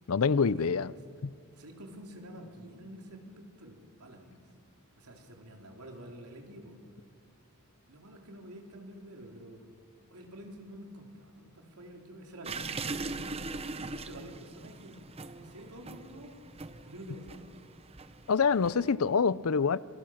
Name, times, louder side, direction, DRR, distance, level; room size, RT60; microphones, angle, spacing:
voice 1, 0.1-0.9 1.2-1.3 18.3-19.8, left 5 dB, 70° left, 0.5 m, -26 dB
voice 2, 1.6-4.4 5.0-6.8 7.9-9.6 10.1-13.4 13.9-15.1 15.4-16.4 16.8-17.5, equal, 85° right, 3.7 m, -48 dB
sound 1, 12.4-18.9, right 3 dB, 25° right, 0.8 m, -41 dB
27.0 x 23.5 x 6.4 m
head